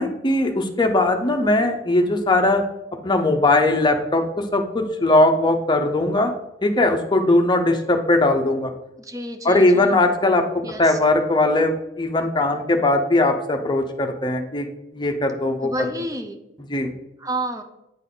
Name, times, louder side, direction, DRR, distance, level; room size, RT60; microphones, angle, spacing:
voice 1, 0.0-2.6 3.0-6.3 6.6-8.7 9.4-10.4 10.8-14.6 14.9-15.7 16.7-16.9, left 2 dB, 25° left, 4 dB, 0.7 m, -19 dB
voice 2, 9.0-10.0 10.6-11.0 15.6-16.4 17.2-17.6, right 1 dB, 20° right, 5 dB, 0.7 m, -30 dB
9.1 x 4.1 x 3.9 m, 0.90 s
head